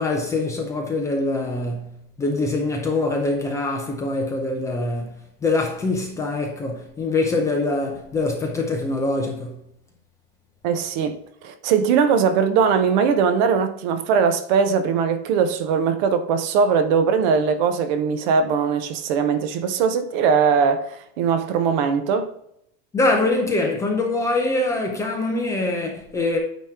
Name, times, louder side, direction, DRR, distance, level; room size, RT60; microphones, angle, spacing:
voice 1, 0.0-5.2 5.4-9.6 22.9-26.4, left 2 dB, 10° left, 0.5 m, -24 dB
voice 2, 10.6-11.2 11.4-22.3, right 6 dB, 45° right, 0.7 m, -20 dB
9.0 x 3.0 x 4.9 m
supercardioid pair, 175°, 32 cm